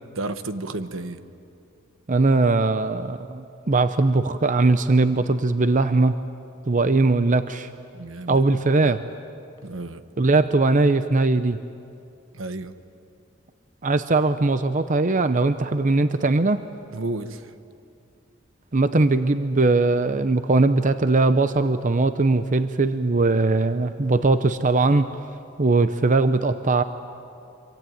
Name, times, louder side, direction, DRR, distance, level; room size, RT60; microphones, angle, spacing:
voice 1, 0.1-1.2 7.9-8.4 9.6-10.0 12.3-12.7 16.9-17.4, right 2 dB, 75° right, 10 dB, 1.3 m, -31 dB
voice 2, 2.1-6.2 6.7-7.7 8.3-9.0 10.2-11.6 13.8-16.7 18.7-25.1 25.6-26.8, right 3 dB, 40° right, 11 dB, 0.7 m, -20 dB
26.5 x 24.5 x 9.3 m, 2.5 s
head